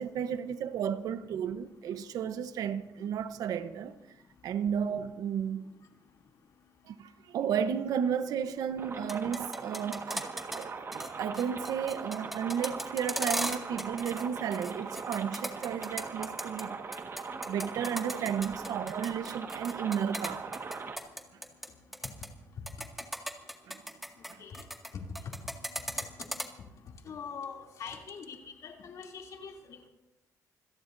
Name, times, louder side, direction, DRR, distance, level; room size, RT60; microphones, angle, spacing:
voice 1, 0.0-3.9 4.4-5.7 6.9-10.3 10.6-16.8 17.5-20.5 23.7-23.8 24.3-24.4, right 8 dB, 75° right, 1.0 m, -33 dB
sound 1, 8.8-21.0, right 4 dB, 40° right, 1.7 m, -40 dB
sound 2, 8.9-10.6 10.9-11.1 11.3-14.2 14.5-16.6 16.9-21.7 21.9-22.3 22.7-24.9 25.1-26.4, equal, ahead, 2.1 m, -36 dB
voice 2, 27.0-29.9, left 6 dB, 65° left, 3.0 m, -43 dB
26.5 x 17.5 x 2.7 m
cardioid pair, 100°, 6 cm